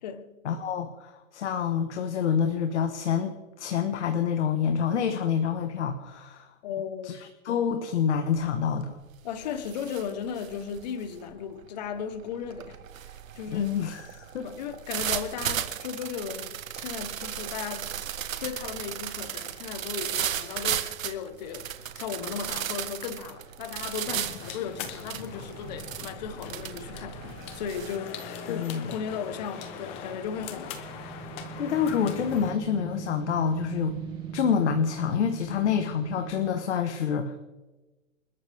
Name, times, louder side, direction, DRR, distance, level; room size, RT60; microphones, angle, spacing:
voice 1, 0.4-6.5 7.0-9.0 13.5-14.5 28.5-28.9 31.6-34.0 34.3-37.4, left 7 dB, 55° left, 6 dB, 1.6 m, -27 dB
voice 2, 6.6-7.1 9.2-12.8 13.3-13.8 14.4-17.9 18.4-21.7 21.9-30.8, left 7 dB, 30° left, 10 dB, 1.3 m, -36 dB
sound 1, 8.3-8.7 9.0-28.0, right 9 dB, 70° right, 1.6 m, -35 dB
sound 2, 24.0-32.5, left 5 dB, 15° left, 1.0 m, -41 dB
sound 3, 30.2-36.5, right 8 dB, 10° right, 2.2 m, -40 dB
29.0 x 13.0 x 3.6 m, 1.2 s
hypercardioid pair, 170°, 41 cm